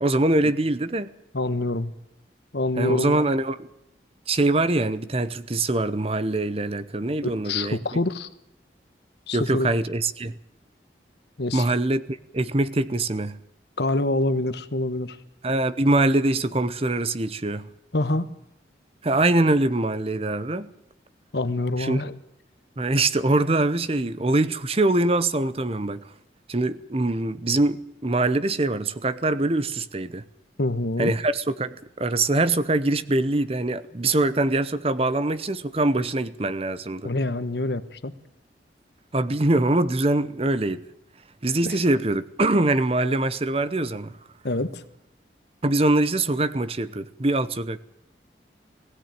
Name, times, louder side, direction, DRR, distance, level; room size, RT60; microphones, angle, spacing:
voice 1, 0.0-1.1 2.8-3.7 4.3-7.8 9.3-10.3 11.5-13.4 15.4-17.7 19.0-20.7 21.8-22.0 22.8-26.1 26.5-30.2 31.0-37.1 39.1-40.8 41.4-44.2 45.6-47.8, right 2 dB, 30° right, 0.8 m, -23 dB
voice 2, 1.3-1.9 2.5-3.2 7.2-8.3 9.3-9.7 11.4-11.6 13.8-15.2 17.9-18.3 21.3-22.1 30.6-31.1 37.0-38.1 41.6-41.8 44.4-44.8, left 2 dB, 65° left, 1.2 m, -26 dB
18.5 x 16.5 x 9.1 m
head